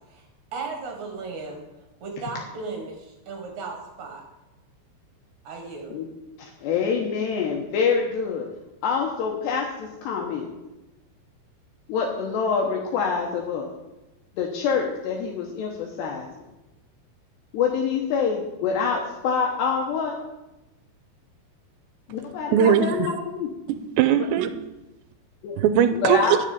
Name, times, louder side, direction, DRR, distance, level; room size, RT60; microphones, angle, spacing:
voice 1, 0.5-1.6 2.0-4.2 5.4-5.9, right 4 dB, 50° right, 2 dB, 2.8 m, -35 dB
voice 2, 6.4-8.5 8.8-10.5 11.9-13.7 14.4-16.5 17.5-20.2 22.1-23.5 25.4-25.6 25.9-26.3, left 6 dB, 75° left, 0 dB, 3.2 m, -26 dB
voice 3, 22.5-23.1 23.7-24.5 25.6-26.2, right 9 dB, 80° right, 11 dB, 2.9 m, -20 dB
10.5 x 6.9 x 8.6 m, 0.99 s
omnidirectional pair, 5.1 m